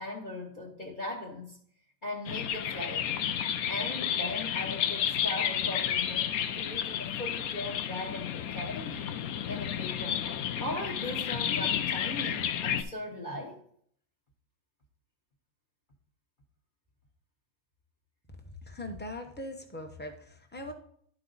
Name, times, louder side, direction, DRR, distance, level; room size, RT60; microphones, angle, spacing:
voice 1, 0.0-1.6 2.0-3.2 3.7-9.1 9.5-10.3 10.6-13.6, left 1 dB, 35° left, 1.1 m, -39 dB
sound 1, 2.3-12.8, left 9 dB, 80° left, 1.1 m, -32 dB
voice 2, 18.7-20.7, left 1 dB, 10° left, 0.8 m, -40 dB
12.0 x 4.7 x 3.9 m
omnidirectional pair, 1.5 m